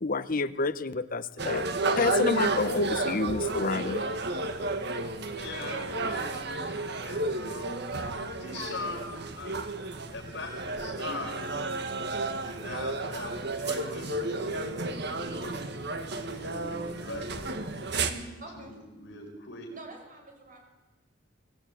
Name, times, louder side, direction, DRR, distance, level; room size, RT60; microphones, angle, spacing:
voice 1, 0.0-1.6 1.9-4.0, left 3 dB, 45° left, 13 dB, 1.0 m, -29 dB
sound 1, 1.4-18.1, right 2 dB, 60° right, 1.8 m, -32 dB
voice 2, 4.9-7.8 8.4-9.5 10.1-11.5 12.4-15.7 16.1-19.7, left 2 dB, 65° left, 1 dB, 5.2 m, -42 dB
voice 3, 18.4-18.7 19.7-20.6, right 2 dB, 45° right, 3 dB, 6.4 m, -46 dB
24.0 x 18.0 x 9.0 m, 1.1 s
head